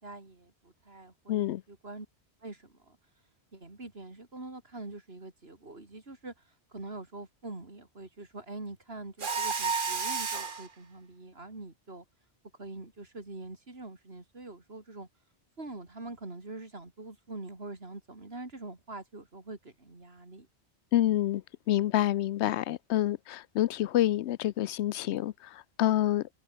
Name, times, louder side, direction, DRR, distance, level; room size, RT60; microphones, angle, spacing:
voice 1, 0.0-2.1 2.4-3.0 3.5-12.0 12.6-15.1 15.6-20.5, right 2 dB, 65° right, 4.2 m, -44 dB
voice 2, 1.3-1.6 20.9-21.4 21.7-26.3, left 13 dB, 85° left, 0.9 m, -27 dB
Mechanisms, 9.2-10.7, right 5 dB, 50° right, 1.6 m, -31 dB
omnidirectional pair, 1.1 m